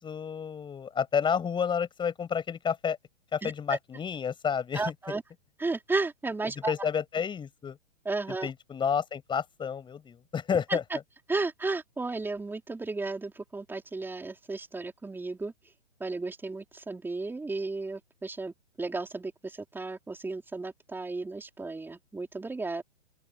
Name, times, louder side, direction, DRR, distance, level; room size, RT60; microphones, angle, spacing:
voice 1, 0.0-3.0 3.3-4.9 6.7-7.8 8.4-10.8, left 7 dB, 15° left, 6.4 m, -30 dB
voice 2, 3.4-3.8 4.7-5.2 5.6-6.9 8.0-8.5 10.7-11.0 11.3-15.5 16.0-22.8, right 3 dB, 5° right, 4.1 m, -34 dB
open air
hypercardioid pair, 130°, 35 cm